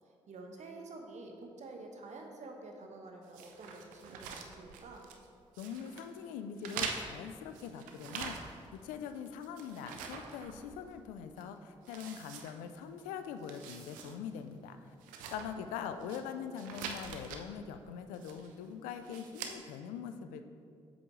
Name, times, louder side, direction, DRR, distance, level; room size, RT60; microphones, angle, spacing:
voice 1, 0.3-5.1, right 2 dB, 60° right, 2 dB, 1.1 m, -48 dB
sound 1, 3.3-5.3 5.5-6.1 6.6-8.8 9.1-11.0 11.4-11.5 11.9-13.0 13.3-14.2 14.5-14.6 15.0-16.2 16.6-17.4 18.1-18.6 19.0-19.6, right 6 dB, 90° right, 0.5 m, -44 dB
voice 2, 5.6-14.9 15.3-20.4, left 7 dB, 90° left, 8 dB, 0.4 m, -43 dB
7.9 x 6.2 x 3.2 m, 2.3 s
supercardioid pair, 45°, 13 cm